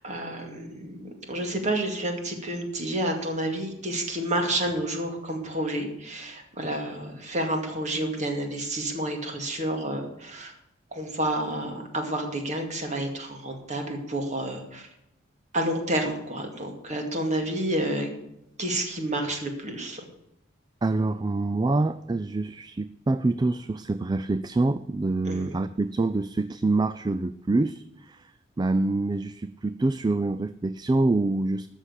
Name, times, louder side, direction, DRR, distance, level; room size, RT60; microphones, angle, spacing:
voice 1, 0.0-10.5 10.9-14.9 15.5-18.1 18.6-20.1 25.3-25.6, right 1 dB, 40° right, 4 dB, 2.3 m, -30 dB
voice 2, 20.8-28.3 28.6-31.7, right 2 dB, 20° right, 13 dB, 0.3 m, -26 dB
13.0 x 6.5 x 8.2 m, 0.86 s
head